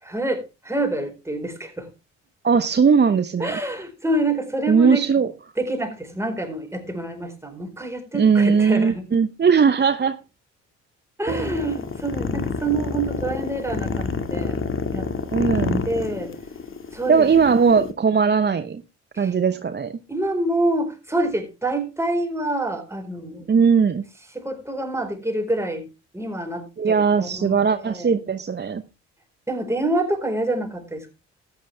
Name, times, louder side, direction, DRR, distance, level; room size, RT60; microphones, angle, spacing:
voice 1, 0.0-1.9 3.4-5.1 5.6-9.1 11.2-14.6 14.9-15.1 15.4-15.5 15.9-16.3 16.9-17.3 19.1-19.3 20.1-23.5 24.3-25.8 26.1-28.2 29.5-31.1, right 1 dB, 5° right, 4.5 m, -27 dB
voice 2, 2.4-3.6 4.7-5.3 8.1-10.2 11.3-11.5 15.3-15.8 17.1-18.8 19.2-20.0 23.5-24.0 26.8-28.8, right 6 dB, 30° right, 0.8 m, -19 dB
sound 1, 11.3-17.9, left 5 dB, 35° left, 2.0 m, -28 dB
13.5 x 10.0 x 3.4 m
hypercardioid pair, 50°, 36 cm